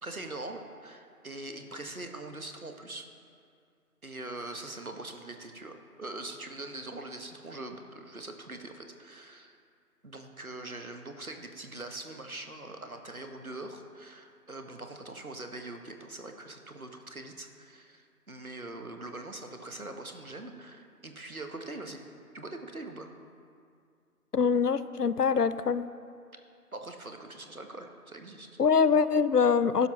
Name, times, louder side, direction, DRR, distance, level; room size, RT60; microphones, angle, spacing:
voice 1, 0.0-3.0 4.0-9.6 10.0-22.0 22.3-23.2 26.7-28.5, right 2 dB, 65° right, 5 dB, 1.2 m, -42 dB
voice 2, 24.3-25.9 28.6-29.9, left 6 dB, 80° left, 14 dB, 0.6 m, -24 dB
11.5 x 11.5 x 3.1 m, 2.3 s
figure-of-eight pair, 180°, 47 cm